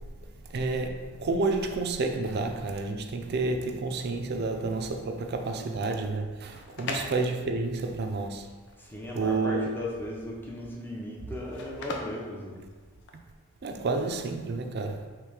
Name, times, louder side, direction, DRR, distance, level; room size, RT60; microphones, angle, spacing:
voice 1, 0.5-8.5 9.1-9.7 13.6-15.0, right 3 dB, 50° right, 0.4 m, -30 dB
sound 1, 6.4-13.3, left 2 dB, 60° left, 0.6 m, -41 dB
voice 2, 8.8-12.6, left 1 dB, 10° left, 0.6 m, -37 dB
3.2 x 3.1 x 4.8 m
head